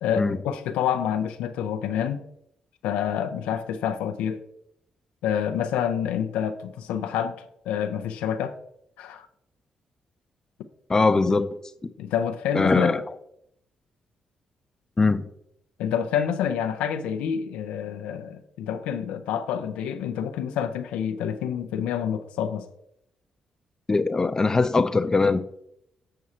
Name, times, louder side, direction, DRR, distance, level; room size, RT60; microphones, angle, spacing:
voice 1, 0.0-2.2 2.8-4.4 5.2-7.3 7.7-8.6 9.0-9.3 12.0-12.9 15.8-22.7, left 8 dB, 90° left, 0.5 m, -27 dB
voice 2, 10.9-11.5 12.5-13.0 15.0-15.3 23.9-25.4, left 3 dB, 30° left, 0.5 m, -21 dB
7.5 x 4.7 x 4.2 m
supercardioid pair, 55°, 2 cm